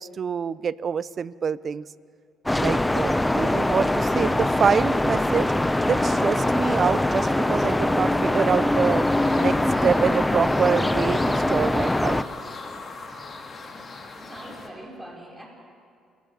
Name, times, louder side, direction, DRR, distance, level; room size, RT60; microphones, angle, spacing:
voice 1, 0.0-1.9 2.5-5.5 5.8-9.0 9.4-9.6 9.8-12.2, right 6 dB, 45° right, 19 dB, 0.5 m, -26 dB
sound 1, 2.5-12.2, left 1 dB, 10° left, 0.7 m, -22 dB
sound 2, 5.8-11.0, right 5 dB, 80° right, 5.2 m, -41 dB
sound 3, 8.8-14.7, left 3 dB, 40° left, 2.8 m, -38 dB
voice 2, 13.6-15.5, right 1 dB, 10° right, -1 dB, 5.3 m, -43 dB
28.5 x 15.5 x 7.2 m, 2.3 s
cardioid pair, 90°, 0 cm